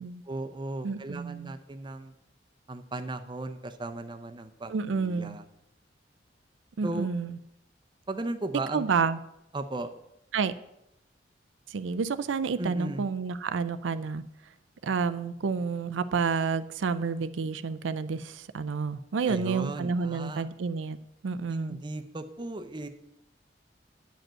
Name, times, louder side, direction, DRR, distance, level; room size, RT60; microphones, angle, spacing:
voice 1, 0.3-2.1 2.7-5.4 6.8-7.1 8.1-8.9 9.5-9.9 12.6-13.0 19.3-20.5 21.5-22.9, right 2 dB, 25° right, 7 dB, 0.6 m, -36 dB
voice 2, 0.8-1.5 4.7-5.4 6.8-7.4 8.7-9.2 10.3-10.5 11.7-14.2 14.8-21.0 21.2-21.8, right 5 dB, 90° right, 12 dB, 0.5 m, -30 dB
9.0 x 5.2 x 7.4 m, 0.83 s
head